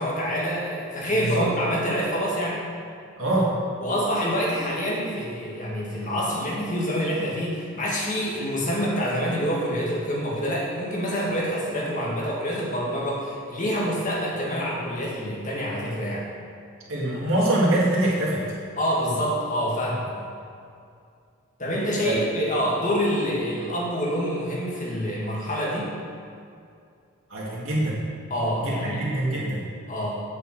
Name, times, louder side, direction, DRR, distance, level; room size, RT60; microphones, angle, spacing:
voice 1, 0.0-2.7 3.8-16.3 18.8-20.3 21.6-25.9 28.3-29.1 29.9-30.2, equal, 35° left, -5 dB, 2.1 m, -26 dB
voice 2, 1.1-1.5 3.2-3.5 16.9-18.4 22.0-22.2 27.3-28.0 28.6-29.6, right 1 dB, 65° right, -6 dB, 2.1 m, -24 dB
8.5 x 5.5 x 7.7 m, 2.4 s
head